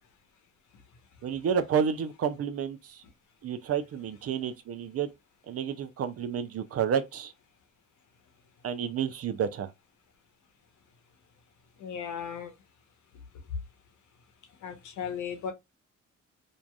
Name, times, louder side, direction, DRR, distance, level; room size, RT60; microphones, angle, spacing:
voice 1, 1.2-3.0 3.4-5.1 5.5-7.3 8.6-9.7, right 7 dB, 50° right, 0.6 m, -30 dB
voice 2, 11.8-12.5 14.6-15.5, left 7 dB, 75° left, 0.9 m, -36 dB
3.1 x 2.6 x 2.2 m
cardioid pair, 90°, 30 cm